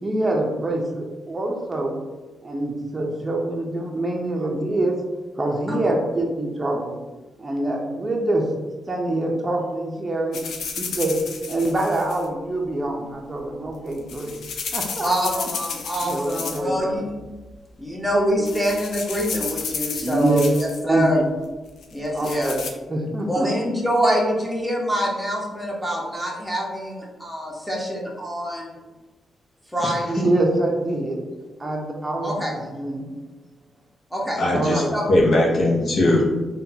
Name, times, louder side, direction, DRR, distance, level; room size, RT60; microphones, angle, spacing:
voice 1, 0.0-2.0 2.4-5.0 5.4-6.9 7.4-8.5 8.9-10.4 10.8-11.2 11.4-14.4 14.7-15.5 16.0-16.9 18.4-18.6 20.0-20.4 20.8-21.1 22.1-22.6 22.9-23.5 30.1-31.2 31.6-33.1 34.5-34.9, right 2 dB, 25° right, -1 dB, 0.5 m, -25 dB
sound 1, 10.3-12.2 13.7-16.8 17.1-17.5 18.0-18.2 18.4-20.8 21.8-22.7, left 5 dB, 80° left, 0.4 m, -32 dB
voice 2, 15.0-17.1 17.8-21.2 21.9-22.6 23.2-28.7 29.7-30.1 32.2-32.5 34.1-34.4 34.9-35.1, equal, 5° left, -2 dB, 0.8 m, -25 dB
voice 3, 34.3-36.2, left 1 dB, 60° left, -2 dB, 0.8 m, -19 dB
3.7 x 2.2 x 2.7 m, 1.2 s
cardioid pair, 85°, 0 cm